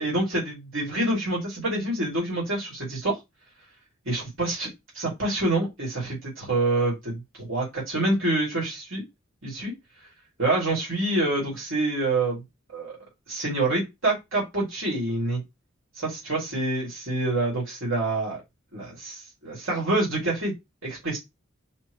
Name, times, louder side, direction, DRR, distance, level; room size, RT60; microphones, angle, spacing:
voice 1, 0.0-3.2 4.1-4.7 5.0-9.0 9.4-9.7 10.4-12.4 12.7-13.0 13.3-15.4 16.0-18.4 18.7-20.5 20.8-21.2, right 2 dB, 80° right, -4 dB, 2.5 m, -27 dB
4.4 x 2.9 x 3.1 m, 0.20 s
head